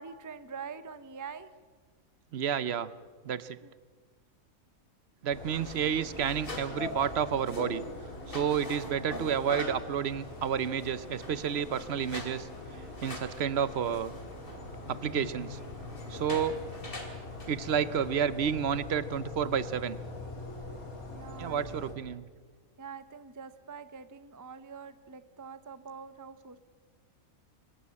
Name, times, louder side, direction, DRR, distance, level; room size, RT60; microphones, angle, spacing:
voice 1, 0.0-1.5 3.6-3.7 21.1-21.9 22.8-26.6, right 6 dB, 20° right, 12 dB, 0.5 m, -45 dB
voice 2, 2.3-2.9 3.2-3.6 5.2-7.8 8.3-12.5 13.0-14.1 14.9-15.6 16.1-16.6 17.5-20.0 21.4-22.2, right 8 dB, 55° right, 16 dB, 0.9 m, -30 dB
sound 1, 5.3-21.9, left 3 dB, 80° left, 3.4 m, -44 dB
sound 2, 5.4-18.1, left 1 dB, 40° left, 2.9 m, -43 dB
25.0 x 13.0 x 8.6 m, 1.5 s
omnidirectional pair, 1.5 m